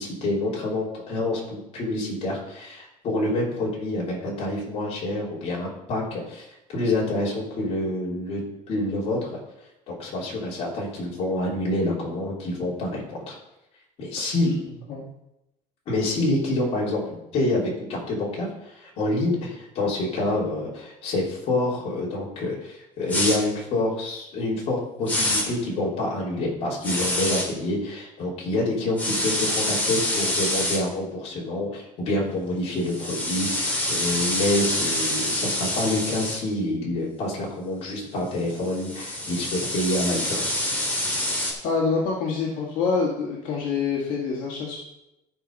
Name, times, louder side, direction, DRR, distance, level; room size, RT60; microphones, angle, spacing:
voice 1, 0.0-8.4 8.7-9.4 9.9-13.4 14.0-14.5 15.9-40.5, left 1 dB, 45° left, -4 dB, 3.4 m, -27 dB
sound 1, 23.1-23.4 25.1-25.4 26.8-27.5 29.0-30.8 32.8-36.4 38.5-41.5, left 1 dB, 10° left, 2.6 m, -26 dB
voice 2, 41.6-44.8, left 5 dB, 70° left, -3 dB, 2.1 m, -26 dB
13.0 x 5.1 x 5.4 m, 0.90 s
cardioid pair, 170°, 14 cm